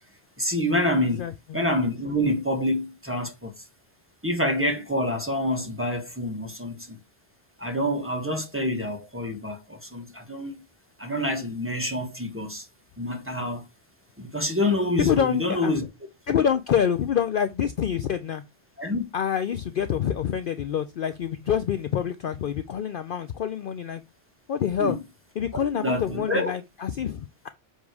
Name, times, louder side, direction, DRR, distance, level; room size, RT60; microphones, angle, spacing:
voice 1, 0.4-1.3 1.5-3.6 4.2-7.0 7.6-10.6 11.0-12.7 13.0-13.7 14.2-15.9 18.8-19.1 24.8-25.0 25.8-26.5, left 1 dB, 10° right, 1.3 m, -27 dB
voice 2, 1.2-1.6 15.0-15.7 16.3-18.4 19.1-24.0 24.5-25.0 25.4-27.5, left 8 dB, 60° left, 0.6 m, -26 dB
7.3 x 3.2 x 4.7 m
omnidirectional pair, 1.2 m